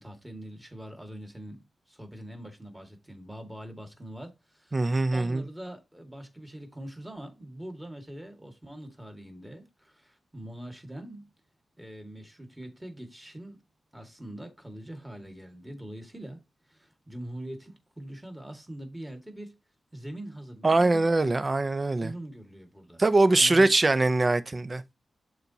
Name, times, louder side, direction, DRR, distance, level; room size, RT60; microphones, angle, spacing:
voice 1, 0.0-11.3 11.8-13.6 13.9-16.4 16.7-19.5 19.9-21.0 22.0-23.0 23.4-23.7, right 1 dB, 10° right, 1.9 m, -43 dB
voice 2, 4.7-5.4 20.6-22.1 23.0-24.8, right 2 dB, 25° right, 0.6 m, -22 dB
11.5 x 4.0 x 2.8 m
wide cardioid pair, 125°, 0 cm